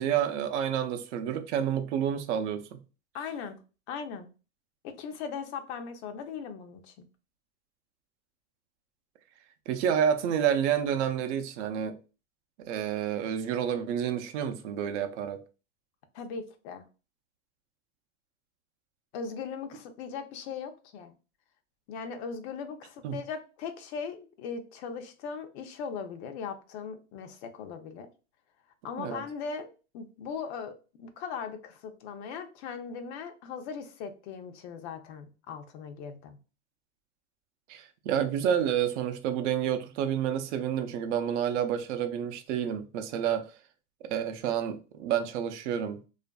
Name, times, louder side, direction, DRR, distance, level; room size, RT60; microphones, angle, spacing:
voice 1, 0.0-2.8 9.7-12.0 12.7-15.4 23.0-23.2 29.0-29.2 37.7-43.4 44.0-46.0, right 9 dB, 60° right, 0.5 m, -29 dB
voice 2, 3.1-3.6 3.9-4.3 4.8-6.9 16.1-16.8 19.1-21.1 21.9-28.1 28.8-36.4, left 6 dB, 55° left, 0.6 m, -39 dB
2.5 x 2.5 x 2.2 m
supercardioid pair, 125°, 39 cm